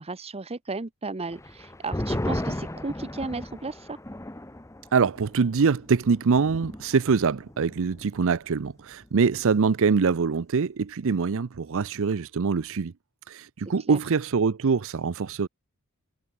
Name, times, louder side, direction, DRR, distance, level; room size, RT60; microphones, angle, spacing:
voice 1, 0.0-4.0 13.9-14.0, right 3 dB, 25° right, 0.9 m, -34 dB
sound 1, 1.3-8.3 8.5-8.6 9.0-9.5, left 1 dB, 15° left, 1.2 m, -36 dB
voice 2, 4.9-12.9 13.3-15.5, right 5 dB, 60° right, 0.5 m, -24 dB
head